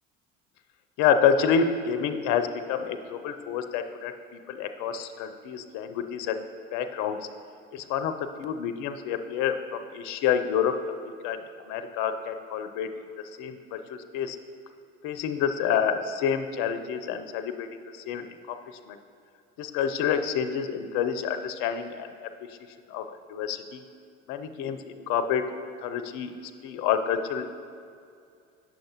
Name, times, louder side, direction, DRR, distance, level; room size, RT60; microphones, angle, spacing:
voice 1, 1.0-6.4 6.7-7.2 7.7-10.7 11.1-11.4 11.6-12.9 13.4-14.4 15.0-17.7 17.9-18.6 18.9-19.0 19.6-22.3 22.9-23.8 24.3-25.4 25.8-26.3 26.6-27.5, left 7 dB, 55° left, 9 dB, 0.5 m, -28 dB
8.8 x 6.4 x 2.9 m, 2.3 s
hypercardioid pair, 65°, 37 cm